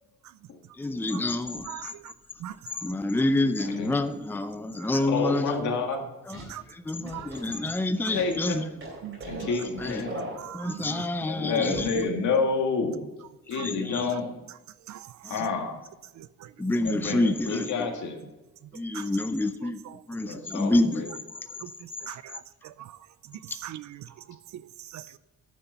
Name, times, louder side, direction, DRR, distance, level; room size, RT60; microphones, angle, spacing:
voice 1, 0.8-1.7 2.8-5.6 6.3-6.4 6.7-8.7 9.8-10.2 10.5-11.9 13.6-14.1 15.2-15.4 16.6-17.9 18.7-21.0, left 2 dB, 5° left, 0.5 m, -28 dB
sound 1, 1.6-1.8 2.5-2.6 3.4-4.2 6.3-6.7 7.0-10.9 11.7-12.1 12.3-12.4, right 1 dB, 45° right, 3.4 m, -41 dB
voice 2, 1.6-2.1 2.4-3.2 4.8-5.1 6.5-6.6 6.9-7.7 9.0-9.5 10.4-11.1 13.5-13.7 14.9-15.3 16.2-16.5 18.6-19.1 19.6-20.0 21.6-25.2, right 12 dB, 70° right, 0.5 m, -42 dB
voice 3, 5.0-6.0 8.1-8.7 9.2-10.3 11.3-13.0 13.5-14.3 15.3-15.8 16.8-18.2 20.3-21.1, left 4 dB, 80° left, 2.0 m, -29 dB
9.9 x 6.7 x 5.6 m
cardioid pair, 115°, 30 cm